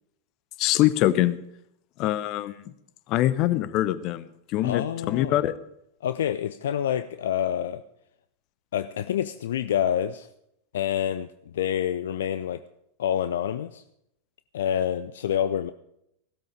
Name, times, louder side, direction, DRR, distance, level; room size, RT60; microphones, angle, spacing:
voice 1, 0.6-1.4 2.0-2.5 3.1-4.2 4.5-5.5, left 14 dB, 40° left, 16 dB, 0.8 m, -23 dB
voice 2, 4.6-5.4 6.0-7.8 8.7-10.3 10.7-11.3 11.5-12.6 13.0-13.8 14.5-15.7, left 10 dB, 60° left, 13 dB, 0.5 m, -27 dB
16.0 x 13.0 x 5.1 m, 0.76 s
figure-of-eight pair, 90°, 0 cm